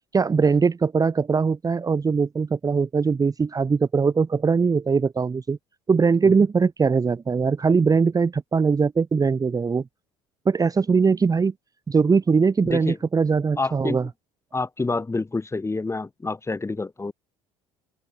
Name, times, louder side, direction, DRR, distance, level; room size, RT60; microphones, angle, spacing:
voice 1, 0.1-5.6 5.9-9.8 10.4-11.5 11.9-14.1, right 5 dB, 25° right, 1.3 m, -21 dB
voice 2, 12.6-13.0 13.6-14.1 14.5-17.1, left 3 dB, 15° left, 4.6 m, -28 dB
figure-of-eight pair, 60°, 15 cm